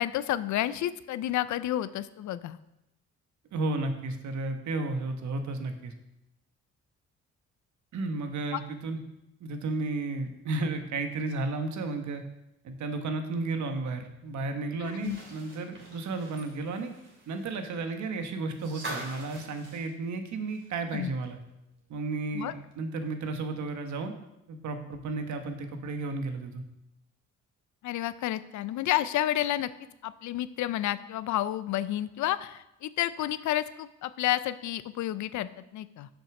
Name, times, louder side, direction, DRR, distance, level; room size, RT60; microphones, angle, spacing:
voice 1, 0.0-2.6 8.5-8.6 14.8-15.2 20.9-21.1 22.3-22.5 27.8-29.7 30.0-36.1, left 13 dB, 75° left, 15 dB, 0.5 m, -30 dB
voice 2, 3.5-5.9 7.9-9.0 9.4-12.2 12.6-16.9 17.3-21.4 21.9-24.1 24.5-26.6, right 3 dB, 70° right, 7 dB, 1.2 m, -33 dB
sound 1, 14.8-20.9 21.2-21.3 22.7-22.8, right 2 dB, 40° right, 2.8 m, -44 dB
7.2 x 6.1 x 5.9 m, 0.88 s
cardioid pair, 90°, 30 cm